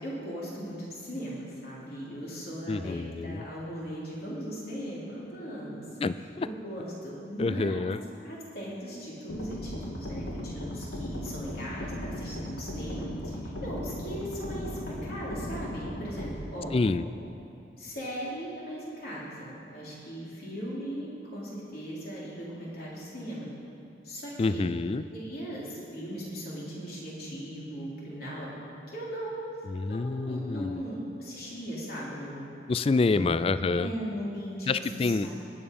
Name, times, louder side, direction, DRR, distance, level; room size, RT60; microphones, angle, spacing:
voice 1, 0.0-5.8 6.2-7.8 8.2-17.0 17.8-23.5 24.0-24.7 25.1-28.5 28.9-29.6 29.9-32.5 33.1-33.4 33.7-35.3, equal, 50° left, -6 dB, 3.5 m, -38 dB
voice 2, 2.7-3.4 6.0-6.5 7.4-8.0 16.7-17.1 24.4-25.0 29.7-30.8 32.7-33.9 34.7-35.3, left 3 dB, 30° left, 14 dB, 0.3 m, -27 dB
sound 1, 9.3-16.3, equal, 85° left, 2.0 m, -37 dB
20.0 x 8.8 x 5.4 m, 2.7 s
head